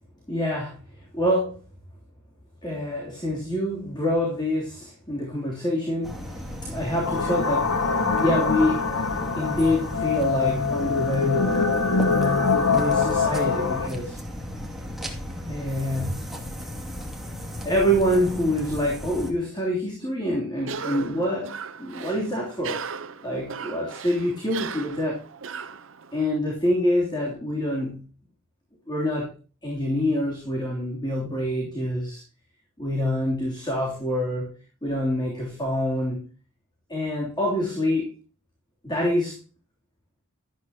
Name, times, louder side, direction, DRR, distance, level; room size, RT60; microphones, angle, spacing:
voice 1, 0.3-1.6 2.6-7.8 8.2-8.8 9.3-11.5 12.5-14.2 15.5-16.3 17.6-22.8 23.2-25.2 26.1-28.0 28.9-29.3 29.6-32.2 32.8-34.5 34.8-36.2 36.9-38.1 38.8-39.4, equal, 20° left, -2 dB, 3.1 m, -26 dB
sound 1, 6.0-19.3, left 1 dB, ahead, 2.3 m, -35 dB
sound 2, 7.0-13.9, left 4 dB, 85° left, 1.6 m, -24 dB
Cough, 20.6-26.4, right 6 dB, 65° right, 0.8 m, -37 dB
12.5 x 12.5 x 2.9 m, 0.35 s
head